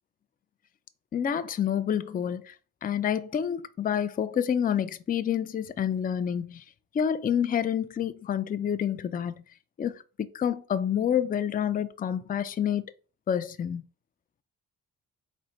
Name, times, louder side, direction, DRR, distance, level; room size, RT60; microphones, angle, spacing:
voice 1, 1.1-2.5 2.8-6.6 6.9-9.3 9.8-12.8 13.3-13.8, left 8 dB, 25° left, 0.4 m, -28 dB
3.7 x 2.2 x 4.3 m
supercardioid pair, 55°, 36 cm